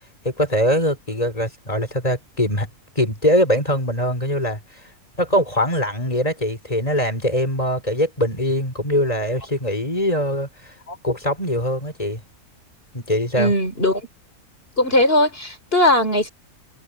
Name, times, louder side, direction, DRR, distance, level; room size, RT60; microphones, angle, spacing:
voice 1, 0.2-2.7 2.9-4.6 5.2-10.7 11.0-12.2 12.9-13.5, equal, 25° left, 4.6 m, -22 dB
voice 2, 13.4-14.0 14.8-16.3, left 1 dB, 40° left, 4.3 m, -19 dB
omnidirectional pair, 1.6 m